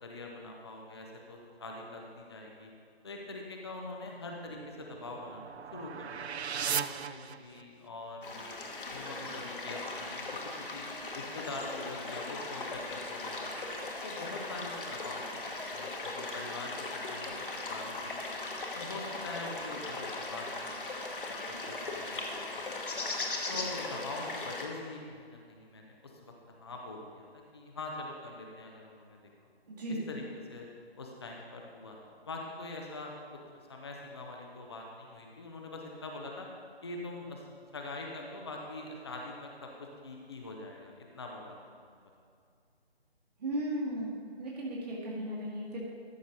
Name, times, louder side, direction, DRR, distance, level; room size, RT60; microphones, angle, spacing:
voice 1, 0.0-2.7 3.0-6.3 6.6-8.5 8.9-10.2 10.7-10.9 11.1-13.7 14.0-15.4 15.7-18.4 18.7-20.8 21.3-23.1 23.5-26.3 26.6-27.3 27.5-29.2 29.9-30.2 30.5-30.7 30.9-32.0 32.3-33.4 33.7-36.5 36.8-37.4 37.7-41.9, left 2 dB, 25° left, 0 dB, 0.7 m, -44 dB
sound 1, 4.5-7.9, right 7 dB, 80° right, 0.5 m, -37 dB
sound 2, 8.2-24.7, left 2 dB, 55° left, 1.4 m, -38 dB
voice 2, 29.7-30.0 43.4-44.1 44.4-45.8, right 1 dB, 40° right, -4 dB, 1.9 m, -35 dB
13.5 x 6.2 x 4.0 m, 2.3 s
figure-of-eight pair, 155°, 32 cm